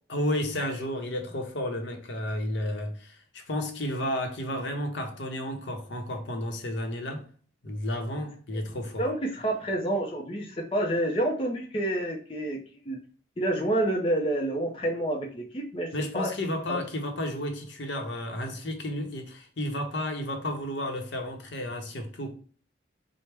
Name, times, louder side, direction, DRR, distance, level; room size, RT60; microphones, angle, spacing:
voice 1, 0.1-7.3 7.6-9.1 15.9-22.3, left 1 dB, 75° left, 0.7 m, -32 dB
voice 2, 9.0-12.6 12.8-13.0 13.4-16.3 16.7-16.8, right 1 dB, 30° left, 0.5 m, -28 dB
4.3 x 2.1 x 3.3 m
head